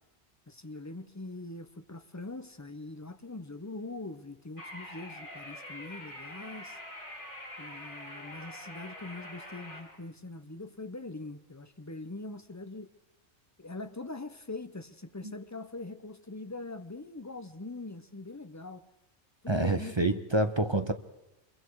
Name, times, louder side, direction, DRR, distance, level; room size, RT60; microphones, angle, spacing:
voice 1, 0.5-6.8 7.6-12.9 13.6-18.8 19.4-20.2, left 2 dB, 15° left, 0.8 m, -42 dB
sound 1, 4.6-9.8, left 1 dB, 45° left, 6.7 m, -45 dB
voice 2, 19.5-20.9, right 2 dB, 25° right, 0.9 m, -27 dB
26.0 x 23.0 x 4.8 m
omnidirectional pair, 1.2 m